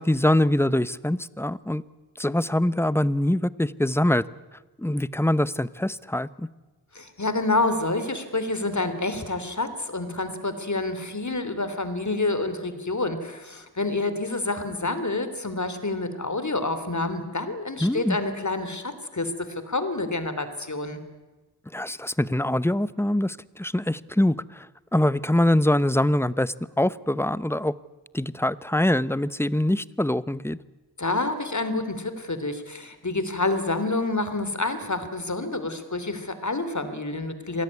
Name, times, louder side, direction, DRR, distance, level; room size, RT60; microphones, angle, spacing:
voice 1, 0.0-1.8 2.2-4.3 4.8-6.5 17.8-18.2 21.7-24.7 24.9-27.7 28.1-30.6, left 1 dB, 5° left, 18 dB, 0.8 m, -24 dB
voice 2, 6.9-21.0 31.0-37.6, left 2 dB, 45° left, 11 dB, 3.2 m, -28 dB
26.5 x 18.0 x 9.7 m, 1.2 s
cardioid pair, 45°, 41 cm